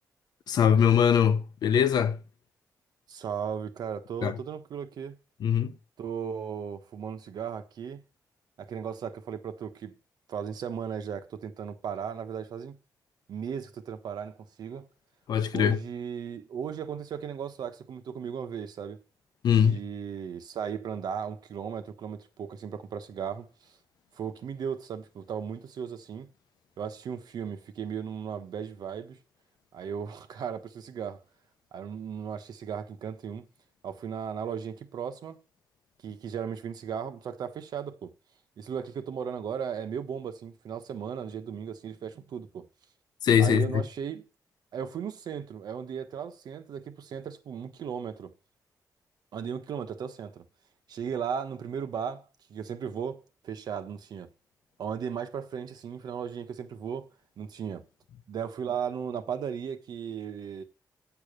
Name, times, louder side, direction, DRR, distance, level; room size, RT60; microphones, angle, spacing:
voice 1, 0.5-2.2 4.2-4.4 5.4-5.7 15.3-15.8 19.4-19.8 43.2-43.8, left 8 dB, 80° left, 0.9 m, -22 dB
voice 2, 3.1-5.2 6.0-8.0 8.6-9.9 10.3-12.8 13.3-14.9 15.5-19.0 19.5-23.7 24.1-26.3 26.8-29.2 29.7-31.2 31.7-33.4 33.8-35.4 36.0-38.1 38.6-42.7 43.4-44.2 44.7-48.3 49.3-50.4 50.9-52.2 52.5-54.3 54.8-57.1 57.4-57.8 58.3-60.6, right 7 dB, 75° right, 1.3 m, -36 dB
8.1 x 7.2 x 6.6 m
wide cardioid pair, 140°, 7 cm